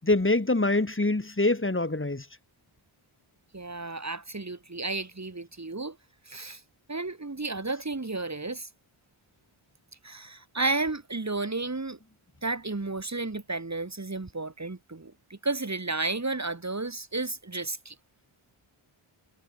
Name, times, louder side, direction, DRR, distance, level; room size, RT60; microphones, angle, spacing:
voice 1, 0.0-2.3, left 2 dB, 25° left, 7.1 m, -25 dB
voice 2, 3.5-6.0 6.3-6.6 6.9-8.7 10.0-12.0 12.4-17.9, right 3 dB, 30° right, 7.6 m, -32 dB
wide cardioid pair, 120°, 50 cm